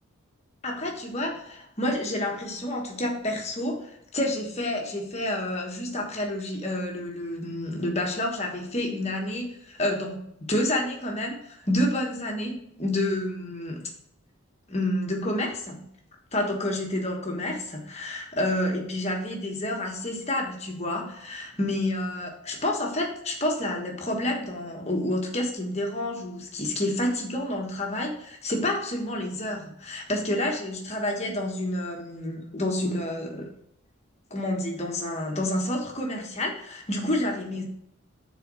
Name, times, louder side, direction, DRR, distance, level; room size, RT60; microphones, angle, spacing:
voice 1, 0.6-10.2 10.5-13.9 14.7-15.8 16.3-33.5 34.3-37.6, left 1 dB, 30° left, 1 dB, 1.3 m, -29 dB
6.8 x 4.2 x 6.1 m, 0.70 s
head